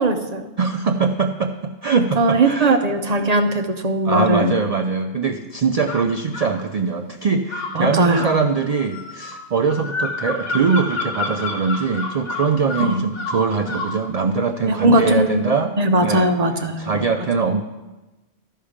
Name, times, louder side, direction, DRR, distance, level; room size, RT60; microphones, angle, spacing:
voice 1, 0.0-0.4 2.2-4.5 7.7-8.3 12.8-13.0 14.7-15.4 15.8-17.1, right 1 dB, 40° right, 6 dB, 0.7 m, -19 dB
voice 2, 0.6-2.8 4.0-15.7 16.0-16.3 16.8-17.6, right 5 dB, 80° right, 6 dB, 0.3 m, -22 dB
sound 1, 5.9-6.5 7.5-14.0, left 3 dB, 40° left, 1.0 m, -29 dB
12.5 x 5.5 x 5.0 m, 1.1 s
omnidirectional pair, 1.2 m